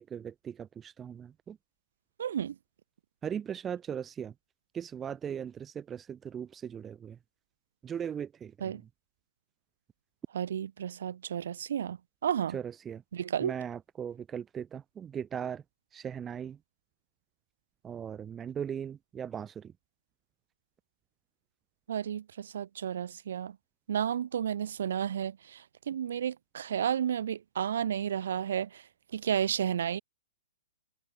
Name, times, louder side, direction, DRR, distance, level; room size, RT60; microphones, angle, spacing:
voice 1, 0.0-1.6 3.2-4.3 4.7-7.2 7.8-8.9 12.5-13.0 13.4-15.6 15.9-16.6 17.8-19.7, right 8 dB, 15° right, 3.8 m, -38 dB
voice 2, 2.2-2.5 8.6-8.8 10.3-12.6 13.1-13.5 21.9-23.5 23.9-25.3 25.9-28.7 29.1-30.0, right 9 dB, 65° right, 6.2 m, -32 dB
hypercardioid pair, 160°, 0 cm